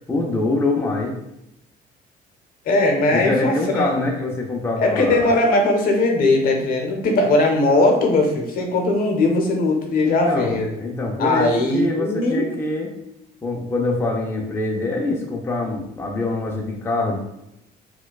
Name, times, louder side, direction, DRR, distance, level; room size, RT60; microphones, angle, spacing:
voice 1, 0.1-1.1 3.1-5.3 10.1-12.9 13.4-17.2, left 2 dB, 15° left, 0 dB, 0.5 m, -24 dB
voice 2, 2.7-3.9 4.8-10.8 11.2-12.5, left 2 dB, 60° left, 2 dB, 0.7 m, -19 dB
4.2 x 2.3 x 2.3 m, 0.83 s
cardioid pair, 110°, 17 cm